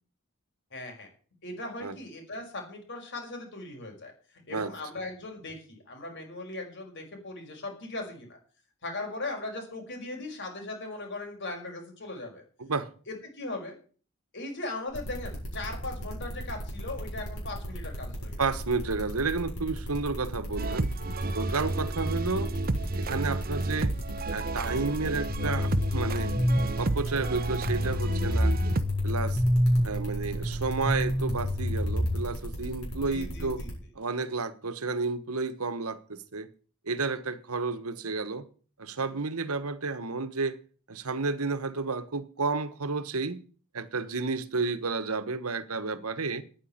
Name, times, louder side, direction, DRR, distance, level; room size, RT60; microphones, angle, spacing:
voice 1, 0.7-1.1 1.4-4.1 4.5-8.4 8.8-12.4 13.1-13.8 14.3-18.4 33.1-33.7, left 2 dB, 55° left, 5.5 m, -38 dB
sound 1, 14.9-33.7, equal, 85° left, 7.4 m, -38 dB
voice 2, 18.4-20.9 21.3-22.5 23.0-23.9 24.3-26.3 26.8-28.5 29.0-29.4 29.8-33.6 34.0-36.5 36.9-38.4 38.8-40.6 40.9-43.4 43.7-46.4, right 4 dB, 80° right, 1.3 m, -31 dB
sound 2, 20.6-28.8, right 2 dB, 45° right, 0.8 m, -32 dB
sound 3, 25.3-32.2, equal, 10° left, 1.9 m, -28 dB
9.9 x 9.5 x 8.8 m
head